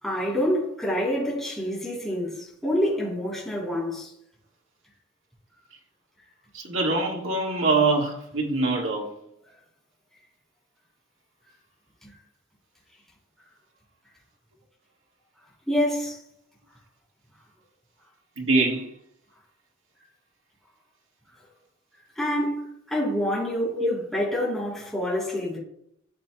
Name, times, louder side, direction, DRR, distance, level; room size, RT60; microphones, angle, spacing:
voice 1, 0.0-4.1 12.0-12.1 15.7-16.2 22.1-22.6 22.9-25.6, equal, ahead, 3.4 m, -27 dB
voice 2, 6.5-9.1 18.4-18.9 23.8-23.9, right 3 dB, 85° right, 1.8 m, -24 dB
12.0 x 7.4 x 2.3 m
head